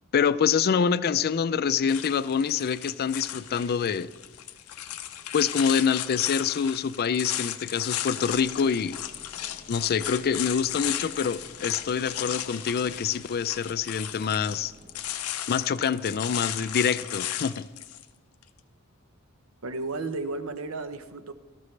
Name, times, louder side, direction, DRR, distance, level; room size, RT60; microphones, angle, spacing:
voice 1, 0.1-4.1 5.3-9.0 9.7-14.7 15.5-17.7, left 6 dB, 45° left, 16 dB, 0.4 m, -26 dB
sound 1, 1.9-18.0, left 12 dB, 85° left, 0.6 m, -35 dB
sound 2, 8.3-15.1, right 1 dB, 35° right, 0.9 m, -53 dB
voice 2, 19.6-21.3, right 3 dB, 70° right, 10 dB, 0.8 m, -33 dB
17.5 x 14.0 x 3.3 m, 1.3 s
head